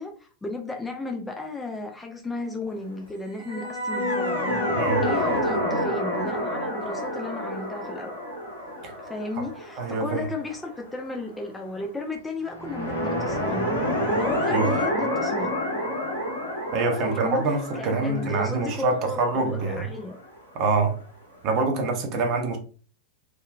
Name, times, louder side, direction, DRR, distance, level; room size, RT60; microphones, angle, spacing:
voice 1, 0.0-8.1 9.0-15.6 17.0-17.4 17.7-20.2, left 2 dB, 10° left, 0.4 m, -34 dB
sound 1, 3.4-10.6 12.5-20.3, equal, 75° left, 1.4 m, -28 dB
voice 2, 9.8-10.3 14.5-14.7 16.7-19.9 20.5-21.0 21.4-22.6, right 3 dB, 40° right, 0.7 m, -25 dB
3.5 x 2.2 x 2.3 m
figure-of-eight pair, 90°, 0 cm